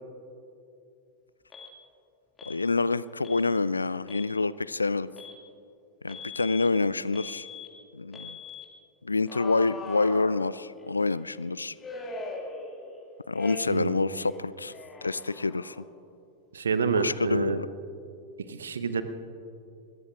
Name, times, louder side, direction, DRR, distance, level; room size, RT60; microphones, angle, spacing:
Alarm, 1.5-1.7 2.4-2.6 3.2-3.4 4.0-4.3 5.2-5.4 6.1-6.7 7.1-7.7 8.1-8.7 9.3-10.8 11.8-13.0 13.3-13.9 14.2-15.9, left 3 dB, 20° left, 2.2 m, -41 dB
voice 1, 2.5-5.1 6.0-7.5 7.9-8.4 9.0-11.7 13.3-14.7 15.0-15.8 16.9-17.7, left 3 dB, 80° left, 18 dB, 0.3 m, -27 dB
voice 2, 13.6-14.0 16.5-17.6 18.5-19.0, right 5 dB, 70° right, 11 dB, 0.9 m, -28 dB
26.0 x 22.0 x 2.5 m, 2.6 s
figure-of-eight pair, 90°, 0 cm